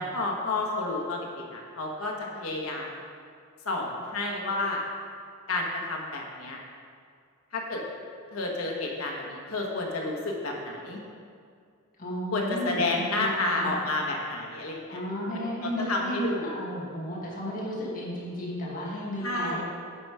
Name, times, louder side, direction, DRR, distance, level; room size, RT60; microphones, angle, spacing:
voice 1, 0.0-3.0 3.6-4.8 5.5-6.6 7.5-7.8 8.3-11.0 12.3-15.0 15.6-16.6 19.2-19.6, left 2 dB, 75° left, 0 dB, 1.4 m, -30 dB
voice 2, 12.0-13.7 14.9-19.6, equal, 40° left, -5 dB, 1.8 m, -33 dB
8.9 x 5.6 x 4.9 m, 2.3 s
head